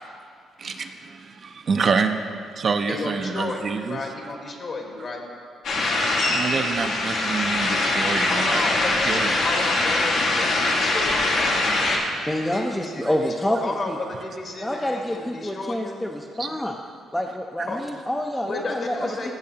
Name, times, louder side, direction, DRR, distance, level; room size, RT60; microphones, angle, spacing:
voice 1, 0.6-2.1 2.6-4.0 6.3-8.6 9.0-9.3 16.4-16.5, right 5 dB, 45° right, 6 dB, 0.5 m, -26 dB
voice 2, 2.9-5.3 8.3-9.1 9.4-11.6 12.5-16.0 17.7-17.8 18.5-19.3, left 3 dB, 50° left, 1 dB, 1.4 m, -32 dB
sound 1, 5.6-12.0, left 2 dB, 75° left, 1.3 m, -22 dB
voice 3, 12.3-14.0 14.6-16.8 17.1-19.1, left 1 dB, 10° left, 2 dB, 0.4 m, -27 dB
13.5 x 6.4 x 2.8 m, 2.3 s
cardioid pair, 90°, 0 cm